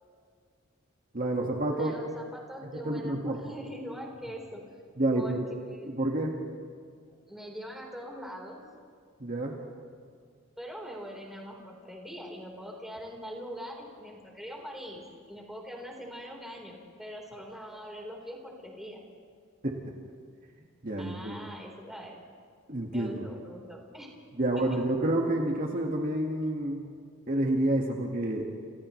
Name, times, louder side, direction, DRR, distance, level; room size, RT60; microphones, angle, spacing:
voice 1, 1.1-2.1 2.7-3.4 5.0-5.5 5.8-6.4 9.2-9.6 19.6-19.8 20.8-21.5 22.7-23.3 24.4-26.8 27.3-28.5, right 1 dB, 40° right, 0 dB, 1.9 m, -29 dB
voice 2, 1.7-4.7 5.1-5.4 5.7-5.9 7.3-8.6 10.6-19.0 21.0-22.2 22.9-24.1 24.6-24.7, equal, ahead, -1 dB, 4.2 m, -42 dB
29.5 x 29.5 x 3.3 m, 2.1 s
head